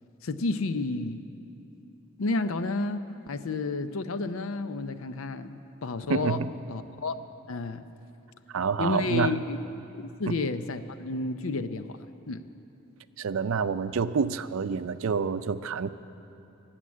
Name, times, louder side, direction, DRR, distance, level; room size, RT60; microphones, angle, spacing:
voice 1, 0.2-1.2 2.2-6.4 6.7-7.2 7.5-7.8 8.8-9.6 9.9-12.0 12.3-12.4, left 3 dB, 85° left, 11 dB, 0.6 m, -31 dB
voice 2, 6.1-6.5 8.5-9.4 10.3-10.4 13.2-15.9, right 5 dB, 80° right, 13 dB, 0.5 m, -28 dB
15.0 x 7.6 x 9.5 m, 2.8 s
head